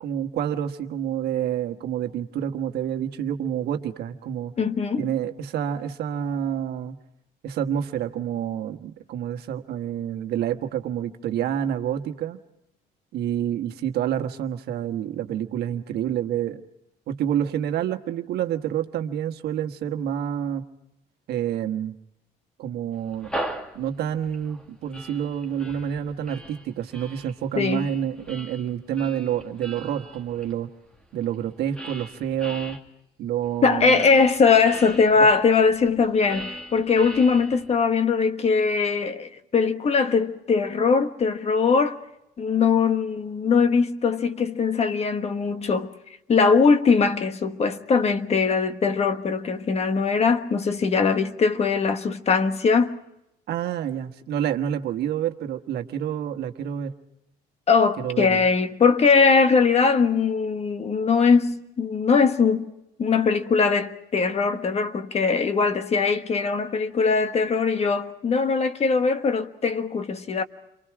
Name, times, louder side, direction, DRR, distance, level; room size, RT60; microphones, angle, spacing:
voice 1, 0.0-4.5 5.0-7.0 7.4-12.4 13.1-16.6 17.1-20.6 21.3-21.9 22.6-23.3 23.7-30.7 31.1-32.8 33.2-34.1 35.2-35.3 53.5-56.9 58.0-58.4, right 10 dB, 70° right, 1.4 m, -28 dB
voice 2, 4.6-5.1 27.6-27.9 33.6-42.0 42.4-45.9 46.3-53.0 57.7-62.7 63.0-70.4, left 5 dB, 40° left, 1.5 m, -21 dB
sound 1, 23.0-32.8 33.4-37.9, equal, 5° left, 2.4 m, -39 dB
30.0 x 24.0 x 4.8 m
cardioid pair, 110°, 17 cm